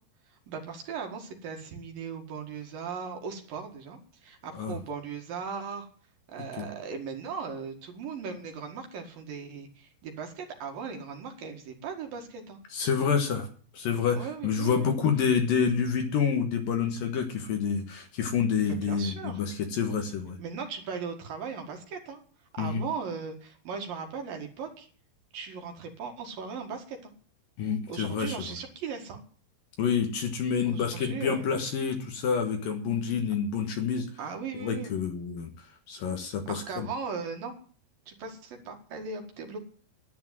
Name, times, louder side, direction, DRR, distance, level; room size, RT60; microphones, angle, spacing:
voice 1, 0.3-5.9 6.3-12.6 14.1-15.0 18.6-19.4 20.4-22.2 22.5-24.9 25.3-27.1 27.9-29.2 30.6-31.5 34.2-34.9 36.5-37.5 38.1-39.6, right 5 dB, 60° right, 3 dB, 3.2 m, -38 dB
voice 2, 12.7-13.5 13.7-20.4 22.6-22.9 27.6-28.3 29.8-34.1 34.6-35.5 35.9-36.9, left 6 dB, 60° left, 5 dB, 2.8 m, -28 dB
11.0 x 10.5 x 7.5 m, 0.44 s
omnidirectional pair, 5.0 m